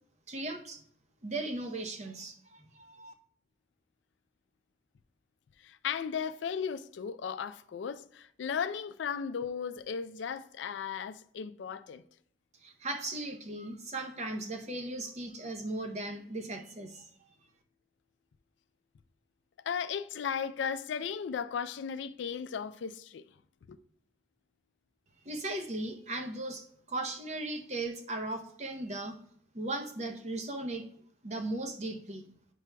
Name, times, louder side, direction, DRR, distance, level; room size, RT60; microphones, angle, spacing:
voice 1, 0.3-0.8 1.2-3.1 12.6-17.1 25.2-29.2 29.5-30.9 31.2-32.2, right 2 dB, 35° right, 0.7 m, -37 dB
voice 2, 5.6-12.0 19.6-23.2 23.7-23.8, left 7 dB, 80° left, 0.4 m, -36 dB
9.1 x 6.0 x 2.2 m
head